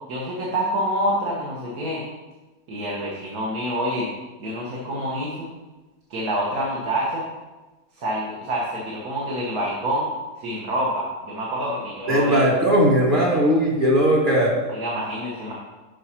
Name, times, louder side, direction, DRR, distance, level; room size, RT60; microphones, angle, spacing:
voice 1, 0.1-2.0 2.7-4.1 4.4-5.5 6.1-7.2 8.0-10.1 10.4-12.4 14.7-15.5, equal, 60° right, -4 dB, 1.7 m, -27 dB
voice 2, 12.1-14.5, equal, 30° right, -2 dB, 1.3 m, -18 dB
6.3 x 4.9 x 5.7 m, 1.2 s
omnidirectional pair, 1.8 m